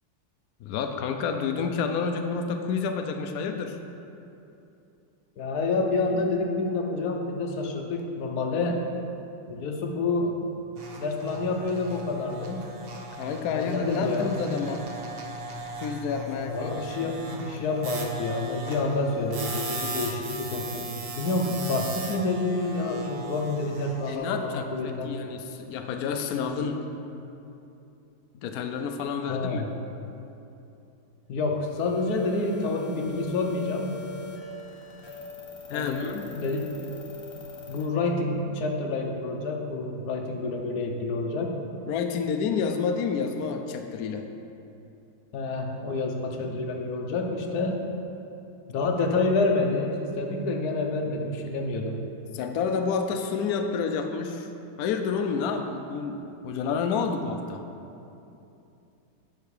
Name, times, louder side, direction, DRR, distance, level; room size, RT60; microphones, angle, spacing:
voice 1, 0.6-3.8 13.2-14.8 15.8-16.7 17.0-17.2 24.1-26.8 28.3-29.6 35.7-36.3 41.9-44.3 52.3-54.5 54.8-57.7, left 5 dB, 90° left, 5 dB, 0.8 m, -29 dB
voice 2, 5.4-8.8 9.5-10.4 11.0-12.6 13.5-14.4 16.5-25.1 29.3-29.7 31.3-33.9 35.7-36.0 36.3-36.7 37.7-41.5 45.3-47.8 48.7-52.0, left 3 dB, 60° left, 2 dB, 1.2 m, -28 dB
sound 1, 10.7-24.2, right 2 dB, 90° right, 0.5 m, -38 dB
sound 2, 31.6-37.8, left 4 dB, 20° left, 0.8 m, -42 dB
10.5 x 4.6 x 4.8 m, 2.8 s
omnidirectional pair, 2.2 m